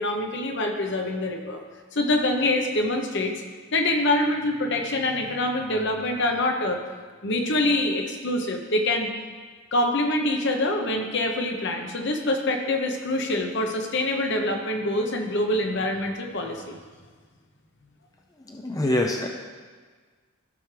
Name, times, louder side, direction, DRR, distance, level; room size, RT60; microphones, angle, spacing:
voice 1, 0.0-1.6 1.9-3.3 3.7-6.8 7.2-9.1 9.7-16.8, left 1 dB, 55° left, 3 dB, 1.1 m, -25 dB
voice 2, 18.6-19.3, left 1 dB, 15° left, 1 dB, 0.5 m, -24 dB
14.5 x 6.0 x 3.4 m, 1.5 s
head